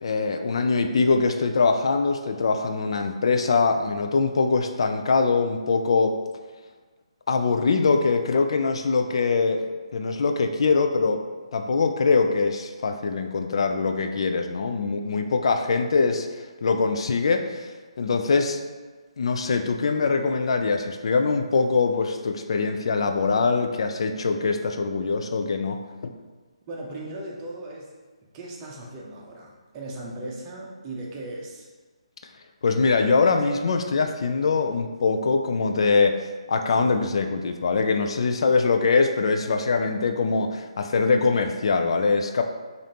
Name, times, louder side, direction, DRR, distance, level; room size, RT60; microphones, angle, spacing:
voice 1, 0.0-6.2 7.3-9.7 9.9-11.2 11.5-17.7 18.0-18.6 19.2-26.1 32.6-36.2 36.5-42.4, left 4 dB, 60° left, 6 dB, 0.3 m, -23 dB
voice 2, 26.7-27.9 28.3-31.7, right 2 dB, 25° right, -2 dB, 0.7 m, -37 dB
5.0 x 2.6 x 2.8 m, 1.4 s
figure-of-eight pair, 150°, 3 cm